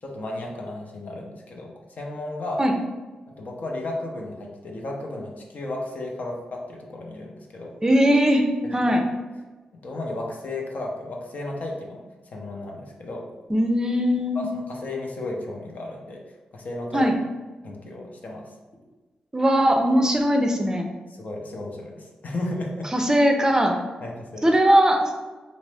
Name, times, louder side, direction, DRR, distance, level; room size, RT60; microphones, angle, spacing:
voice 1, 0.0-1.7 2.0-2.6 3.4-7.7 9.8-12.0 12.3-13.2 14.3-16.2 16.5-17.1 17.6-18.5 21.2-22.9 24.0-24.4, left 2 dB, 60° left, 0 dB, 0.6 m, -33 dB
voice 2, 7.8-9.1 13.5-14.5 16.9-17.1 19.3-20.9 22.9-23.8 24.4-25.2, equal, 20° right, 3 dB, 0.4 m, -20 dB
2.6 x 2.0 x 3.3 m, 1.2 s
supercardioid pair, 45°, 3 cm